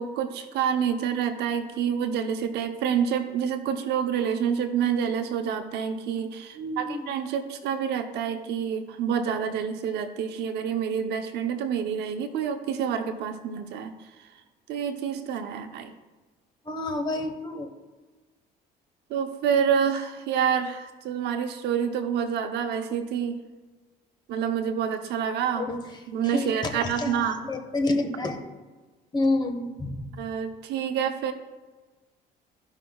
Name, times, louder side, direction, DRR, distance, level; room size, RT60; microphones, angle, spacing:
voice 1, 0.0-13.9 14.7-15.9 19.1-23.4 24.3-25.7 26.1-27.4 30.2-31.3, right 7 dB, 80° right, 7 dB, 0.8 m, -28 dB
voice 2, 6.5-7.1 16.6-17.7 25.6-25.8 26.2-28.4 29.1-30.1, left 2 dB, 25° left, 5 dB, 1.2 m, -29 dB
14.0 x 5.6 x 2.3 m, 1.3 s
cardioid pair, 110°, 17 cm